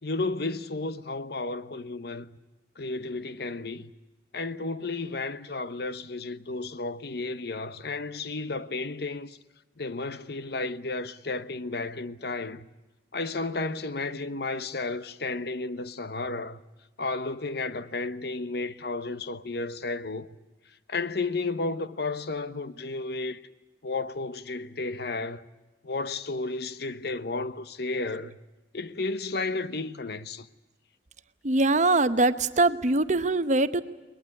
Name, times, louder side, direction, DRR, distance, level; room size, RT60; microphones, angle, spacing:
voice 1, 0.0-2.3 2.8-3.9 4.3-9.4 9.8-12.7 13.1-16.6 17.0-20.3 20.9-23.4 23.8-25.4 25.8-28.4 28.7-30.5, left 3 dB, 65° left, 1.0 m, -32 dB
voice 2, 31.4-33.8, right 2 dB, 45° right, 1.0 m, -22 dB
21.5 x 20.5 x 9.7 m
head